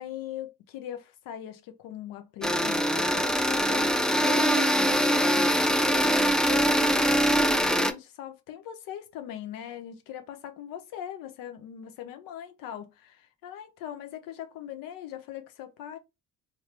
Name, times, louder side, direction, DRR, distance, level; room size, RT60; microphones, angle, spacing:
voice 1, 0.0-16.0, left 10 dB, 90° left, 0.7 m, -40 dB
sound 1, 2.4-7.9, equal, ahead, 0.5 m, -23 dB
2.9 x 2.6 x 3.2 m
cardioid pair, 80°, 32 cm